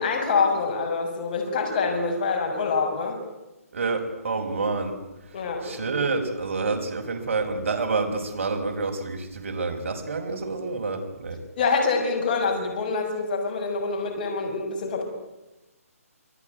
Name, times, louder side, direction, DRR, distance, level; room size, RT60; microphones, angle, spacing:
voice 1, 0.0-3.2 5.3-5.8 11.6-15.0, left 4 dB, 35° left, 3 dB, 6.4 m, -25 dB
voice 2, 3.7-4.9 5.6-11.4, right 3 dB, 60° right, 5 dB, 5.5 m, -28 dB
28.0 x 19.0 x 9.4 m, 1.0 s
hypercardioid pair, 160°, 8 cm